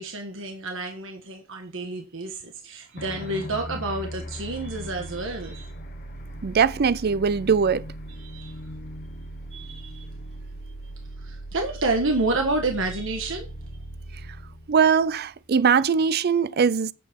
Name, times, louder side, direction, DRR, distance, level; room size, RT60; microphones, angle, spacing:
voice 1, 0.0-5.7 8.2-8.6 9.5-10.1 11.2-13.5, right 2 dB, 65° right, 1.5 m, -29 dB
sound 1, 3.0-15.7, equal, 45° left, 1.1 m, -39 dB
voice 2, 6.4-7.8 14.7-16.9, right 6 dB, 50° right, 0.5 m, -21 dB
9.4 x 7.8 x 3.7 m
head